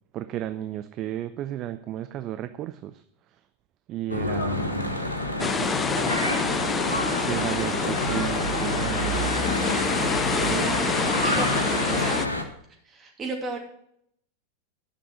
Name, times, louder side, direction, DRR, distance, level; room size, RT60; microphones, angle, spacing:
voice 1, 0.1-3.0 3.9-5.1 5.4-6.5 6.8-9.2 10.3-10.6, right 12 dB, 35° right, 10 dB, 0.5 m, -34 dB
Church bell / Traffic noise roadway noise, 4.1-12.4, left 1 dB, 80° left, 1.2 m, -28 dB
sound 1, 5.4-12.3, left 5 dB, 15° left, 0.4 m, -27 dB
voice 2, 10.4-11.5 11.9-12.2 12.8-13.6, right 3 dB, 20° right, 0 dB, 2.7 m, -33 dB
11.0 x 6.0 x 6.2 m, 0.71 s
figure-of-eight pair, 90°, 0 cm